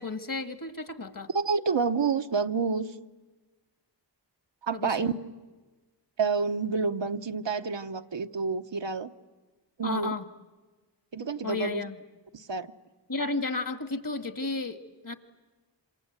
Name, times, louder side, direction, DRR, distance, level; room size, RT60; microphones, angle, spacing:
voice 1, 0.0-1.3 4.7-5.1 9.8-10.3 11.4-12.0 13.1-15.2, left 3 dB, 50° left, 8 dB, 1.8 m, -33 dB
voice 2, 1.3-2.9 4.6-5.1 6.2-9.1 9.8-10.1 11.1-11.8 12.3-12.7, right 5 dB, 75° right, 8 dB, 1.1 m, -28 dB
27.5 x 26.5 x 8.1 m, 1.3 s
wide cardioid pair, 45°, 44 cm